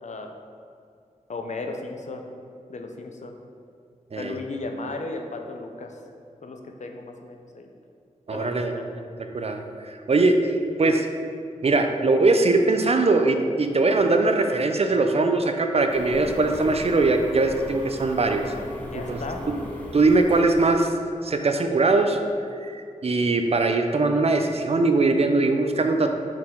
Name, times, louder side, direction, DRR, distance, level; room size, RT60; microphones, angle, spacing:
voice 1, 0.0-0.3 1.3-2.3 2.7-3.4 4.2-6.0 6.4-7.7 8.3-8.9 18.8-19.5, left 3 dB, 60° left, 4 dB, 0.6 m, -35 dB
voice 2, 8.3-8.7 9.3-11.1 11.6-18.5 18.9-19.2 19.9-20.9 21.2-22.2 22.6-26.1, right 3 dB, 50° right, 5 dB, 0.5 m, -21 dB
sound 1, 15.9-20.9, left 1 dB, 10° left, 1.0 m, -38 dB
5.8 x 4.6 x 3.7 m, 2.4 s
wide cardioid pair, 85°, 14 cm